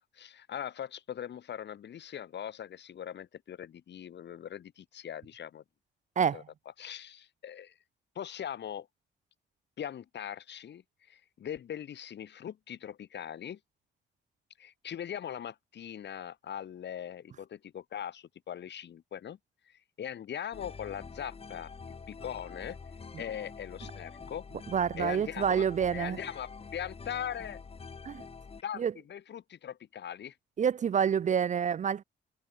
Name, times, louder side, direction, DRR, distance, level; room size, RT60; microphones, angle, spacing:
voice 1, 0.1-5.6 6.3-6.4 6.8-7.7 8.2-8.9 9.8-13.6 14.6-19.4 19.7-21.7 22.1-22.8 23.2-24.5 25.0-25.6 25.9-27.6 28.6-30.4, left 9 dB, 60° left, 3.5 m, -40 dB
sound 1, 20.5-28.6, left 5 dB, 30° left, 1.4 m, -46 dB
voice 2, 24.7-26.2 28.0-28.2 28.8-28.9 30.6-32.0, right 7 dB, 40° right, 0.5 m, -28 dB
cardioid pair, 90°, 20 cm